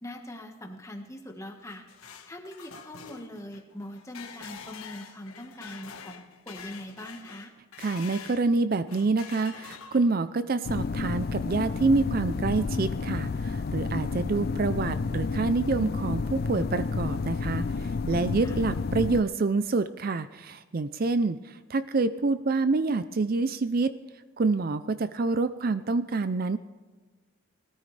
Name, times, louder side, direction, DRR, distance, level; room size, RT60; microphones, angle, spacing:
voice 1, 0.0-1.8 2.3-7.5 18.4-18.6, left 1 dB, 15° left, 3 dB, 1.4 m, -42 dB
sound 1, 1.5-8.5 8.9-10.3, left 6 dB, 90° left, 1.4 m, -46 dB
voice 2, 7.8-23.9 24.4-26.6, right 3 dB, 45° right, 12 dB, 0.4 m, -27 dB
sound 2, 10.6-19.2, left 4 dB, 45° left, 0.4 m, -30 dB
19.5 x 13.5 x 3.3 m, 1.3 s
head